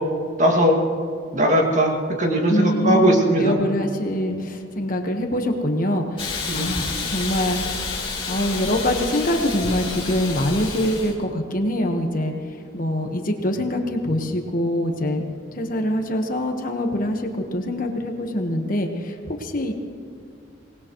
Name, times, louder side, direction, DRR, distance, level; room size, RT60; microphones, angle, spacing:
voice 1, 0.4-0.8 1.3-1.9 2.2-3.6 6.5-6.7, equal, 40° right, 1 dB, 2.2 m, -18 dB
voice 2, 2.5-7.6 8.3-12.3 12.7-15.2 15.5-19.7, left 1 dB, 45° left, 4 dB, 1.3 m, -24 dB
Hiss, 6.2-11.1, left 4 dB, 25° left, 2.9 m, -29 dB
24.5 x 19.0 x 3.1 m, 2.4 s
head